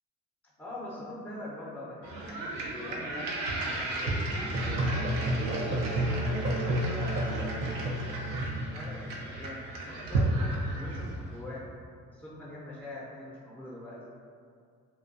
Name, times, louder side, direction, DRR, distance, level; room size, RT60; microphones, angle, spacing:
voice 1, 0.6-5.5 6.1-7.4 8.7-11.7 12.1-14.0, left 1 dB, 5° left, -8 dB, 0.5 m, -43 dB
sound 1, 2.0-11.3, right 2 dB, 75° right, 0.5 m, -34 dB
Musical instrument, 4.5-9.3, right 1 dB, 40° right, 0.6 m, -31 dB
2.3 x 2.2 x 2.6 m, 2.2 s
supercardioid pair, 60°, 33 cm